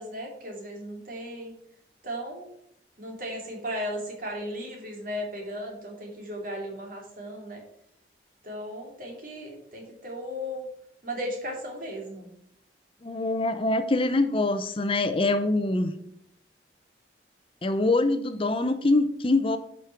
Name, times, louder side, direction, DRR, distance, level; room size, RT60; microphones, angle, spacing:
voice 1, 0.0-1.5 2.0-2.4 3.0-7.6 8.4-10.7 11.0-12.3, equal, 50° right, 1 dB, 2.7 m, -36 dB
voice 2, 13.0-15.9 17.6-19.6, left 2 dB, 30° left, 10 dB, 0.6 m, -24 dB
10.5 x 5.3 x 4.6 m, 0.74 s
head